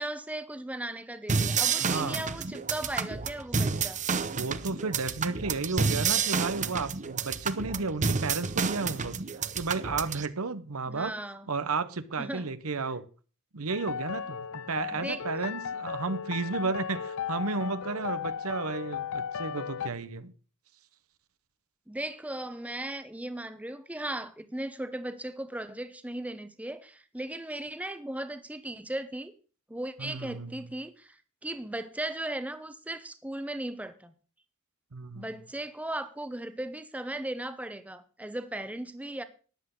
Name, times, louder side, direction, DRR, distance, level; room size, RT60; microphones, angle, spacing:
voice 1, 0.0-4.0 10.9-11.5 12.2-12.5 14.9-15.5 21.9-29.3 29.7-34.1 35.1-39.2, right 1 dB, 5° right, 0.9 m, -37 dB
sound 1, 1.3-10.3, right 5 dB, 35° right, 0.8 m, -30 dB
voice 2, 1.8-2.2 4.3-9.2 9.6-11.1 11.5-13.1 13.5-20.3 30.0-30.6 34.9-35.3, right 4 dB, 90° right, 1.0 m, -33 dB
sound 2, 13.7-19.9, left 7 dB, 65° left, 0.5 m, -36 dB
13.5 x 10.0 x 3.9 m
head